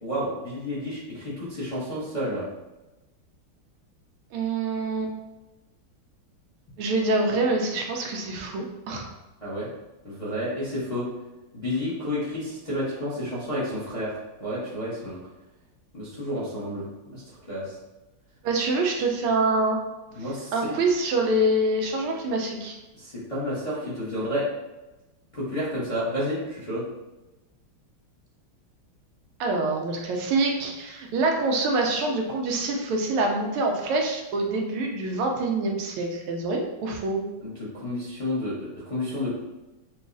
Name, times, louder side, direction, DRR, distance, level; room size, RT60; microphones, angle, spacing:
voice 1, 0.0-2.5 9.4-9.7 10.0-11.1 11.5-15.2 15.9-17.2 17.5-17.8 20.1-20.7 23.0-24.5 25.3-26.8 37.4-39.3, equal, 30° left, -9 dB, 0.6 m, -30 dB
voice 2, 4.3-5.1 6.8-9.1 18.4-19.8 20.5-22.8 29.4-37.3, right 2 dB, 90° right, 1 dB, 1.5 m, -25 dB
5.9 x 2.3 x 2.6 m, 1.0 s
omnidirectional pair, 2.3 m